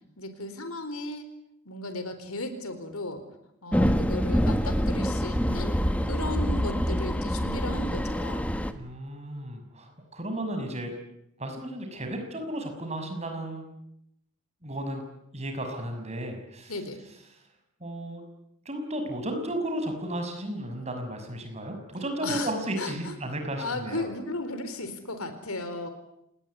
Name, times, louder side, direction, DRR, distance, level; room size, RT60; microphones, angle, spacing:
voice 1, 0.2-1.3 1.6-3.2 3.6-5.8 6.0-8.5 16.7-17.0 22.2-23.2 23.6-25.9, left 2 dB, 85° left, 10 dB, 4.3 m, -35 dB
sound 1, 3.7-8.7, equal, 5° left, 1.5 m, -26 dB
voice 2, 8.7-10.9 11.4-13.6 14.6-15.0 15.3-16.7 17.8-18.2 18.6-24.1, right 1 dB, 30° right, 5 dB, 6.0 m, -34 dB
28.0 x 19.5 x 9.8 m, 0.80 s
head